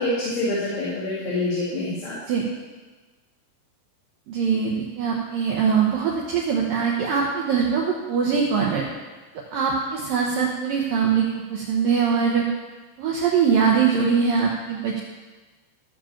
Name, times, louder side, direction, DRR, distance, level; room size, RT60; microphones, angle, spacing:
voice 1, 0.0-2.1, left 2 dB, 80° left, -8 dB, 4.7 m, -26 dB
voice 2, 4.3-8.8 9.5-12.4 13.0-15.0, right 6 dB, 80° right, -1 dB, 2.0 m, -22 dB
14.5 x 5.2 x 7.2 m, 1.3 s
omnidirectional pair, 5.4 m